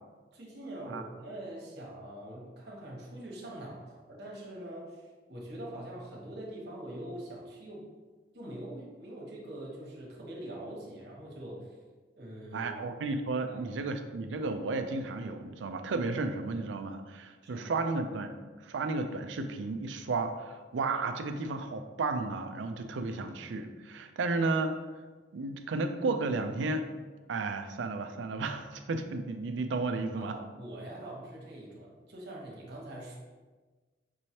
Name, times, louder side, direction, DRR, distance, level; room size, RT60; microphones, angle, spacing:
voice 1, 0.3-7.9 8.3-11.7 12.2-12.7 13.5-13.7 17.4-17.9 30.1-33.2, right 1 dB, 60° right, -3 dB, 1.1 m, -43 dB
voice 2, 12.5-18.3 18.6-24.7 25.3-26.9 27.3-30.4, right 3 dB, 80° right, 7 dB, 0.4 m, -33 dB
5.3 x 3.1 x 2.8 m, 1.3 s
head